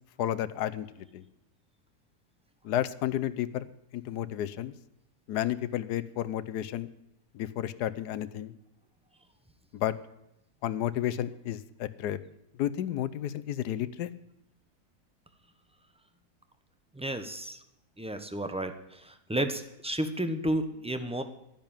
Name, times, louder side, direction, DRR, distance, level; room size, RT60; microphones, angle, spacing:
voice 1, 0.2-0.9 1.1-1.2 2.6-4.7 5.3-6.9 7.3-8.5 9.7-9.9 10.6-12.2 12.6-14.1, left 12 dB, 85° left, 15 dB, 1.3 m, -32 dB
voice 2, 17.0-17.5 18.0-18.7 19.3-21.2, right 1 dB, 5° right, 8 dB, 0.8 m, -31 dB
11.0 x 10.5 x 8.9 m, 0.85 s
omnidirectional pair, 1.7 m